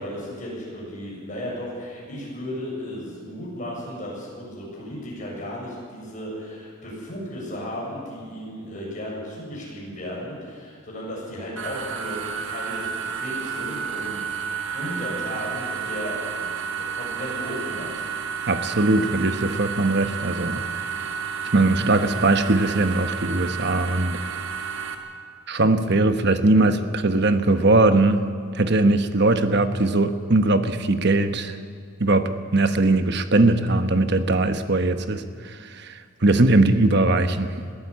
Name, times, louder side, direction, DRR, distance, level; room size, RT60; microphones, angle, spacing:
voice 1, 0.0-16.5 16.8-17.9, equal, 40° left, -4 dB, 7.4 m, -35 dB
sound 1, 11.6-24.9, right 6 dB, 75° right, 1.9 m, -31 dB
voice 2, 18.5-20.6 21.5-24.2 25.5-31.6 32.0-37.5, right 2 dB, 55° right, 9 dB, 1.1 m, -20 dB
21.5 x 15.0 x 8.4 m, 2.1 s
head